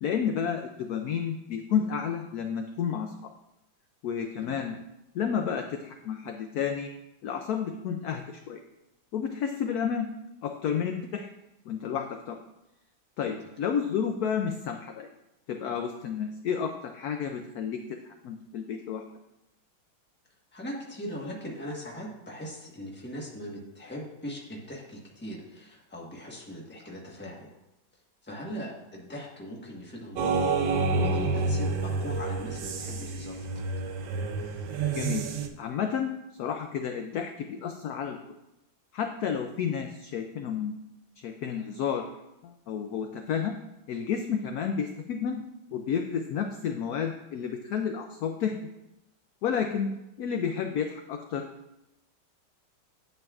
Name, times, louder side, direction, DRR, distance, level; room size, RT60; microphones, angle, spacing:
voice 1, 0.0-3.3 4.0-4.8 5.1-6.9 7.2-8.6 9.1-10.1 10.4-11.3 11.7-12.4 13.2-15.1 15.5-19.0 34.9-35.2 35.6-38.2 38.9-40.8 41.2-42.0 42.4-43.5 43.9-45.4 45.7-48.6 49.4-49.9 50.2-51.5, left 7 dB, 80° left, 5 dB, 0.8 m, -31 dB
voice 2, 20.5-27.5 28.2-33.6, equal, 5° left, -2 dB, 0.9 m, -40 dB
sound 1, 30.2-35.5, right 3 dB, 75° right, 1.4 m, -29 dB
9.2 x 7.7 x 2.4 m, 0.91 s
omnidirectional pair, 2.1 m